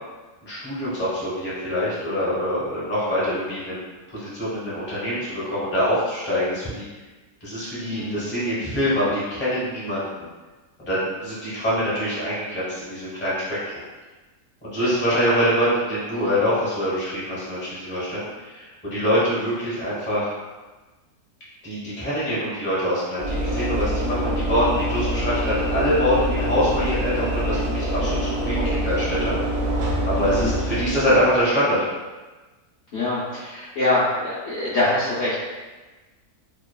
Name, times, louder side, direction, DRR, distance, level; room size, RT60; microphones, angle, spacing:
voice 1, 0.4-3.8 4.1-6.9 7.4-10.0 10.8-13.7 14.6-20.3 21.6-29.4 30.0-31.8, equal, 10° left, -10 dB, 0.7 m, -24 dB
Train / Engine / Alarm, 23.2-31.4, equal, 75° right, 0.6 m, -25 dB
voice 2, 30.2-30.5 32.9-35.4, left 2 dB, 60° left, -10 dB, 0.8 m, -24 dB
2.9 x 2.3 x 2.3 m, 1.2 s
omnidirectional pair, 1.7 m